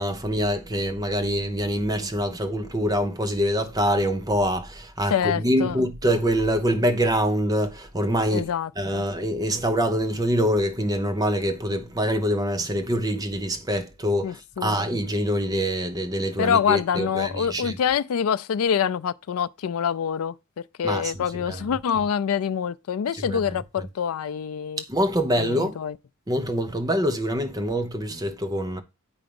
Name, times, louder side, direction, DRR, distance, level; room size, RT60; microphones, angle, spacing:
voice 1, 0.0-8.5 8.8-17.8 20.8-21.1 21.5-21.7 23.3-23.4 23.8-23.9 24.8-25.8 26.3-28.8, equal, 15° right, 0.8 m, -25 dB
voice 2, 5.1-5.8 8.3-9.0 14.2-14.8 16.4-24.8 25.4-26.0, left 7 dB, 75° left, 0.4 m, -26 dB
8.7 x 4.9 x 5.2 m
head